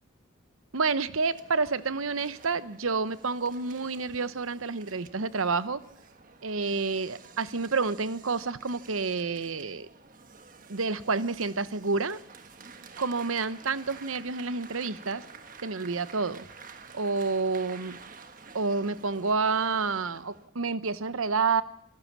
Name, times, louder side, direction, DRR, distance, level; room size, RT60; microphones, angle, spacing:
voice 1, 0.7-5.8 6.4-9.9 10.7-12.2 13.0-15.2 15.6-16.4 16.9-18.0 18.5-21.6, right 4 dB, 90° right, 15 dB, 1.0 m, -29 dB
sound 1, 1.2-20.5, right 5 dB, 40° right, 1.5 m, -50 dB
26.5 x 15.5 x 7.4 m, 0.70 s
head